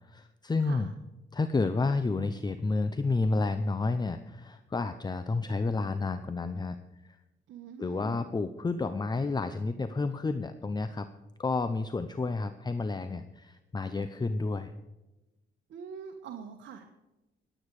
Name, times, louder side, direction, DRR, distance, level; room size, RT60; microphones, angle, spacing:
voice 1, 0.1-0.9 1.3-6.8 7.0-7.2 7.8-11.1 11.4-14.7, left 3 dB, 20° left, 11 dB, 0.7 m, -30 dB
voice 2, 0.6-0.9 7.5-8.2 15.7-16.9, right 6 dB, 70° right, 3 dB, 1.5 m, -44 dB
20.5 x 8.8 x 4.9 m, 1.0 s
cardioid pair, 90°, 20 cm